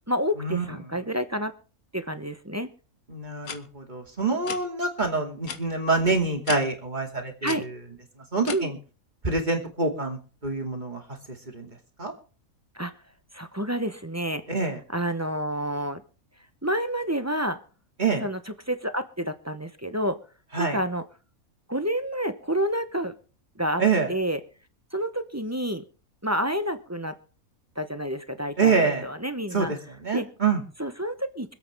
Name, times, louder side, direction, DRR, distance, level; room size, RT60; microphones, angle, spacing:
voice 1, 0.1-1.5 1.9-2.7 7.4-7.6 8.5-8.7 12.7-12.9 13.3-14.4 14.9-16.0 16.6-17.6 18.2-18.4 18.7-20.2 20.6-21.0 21.7-23.1 23.6-23.8 24.1-24.4 24.9-25.8 26.2-27.2 27.8-29.7 30.1-30.3 30.8-31.5, equal, 15° right, 9 dB, 0.8 m, -29 dB
voice 2, 3.1-7.7 8.3-8.8 9.2-11.0 11.5-11.7 12.0-12.1 14.5-14.8 18.0-18.2 20.5-20.8 23.8-24.1 28.6-29.1 29.5-30.6, right 4 dB, 30° right, 2 dB, 2.7 m, -26 dB
sound 1, 3.4-3.6 4.4-4.6 5.4-5.6 6.4-6.6 7.4-7.6 8.4-8.6, left 6 dB, 85° left, 1.7 m, -34 dB
25.5 x 8.5 x 3.6 m, 0.38 s
omnidirectional pair, 1.5 m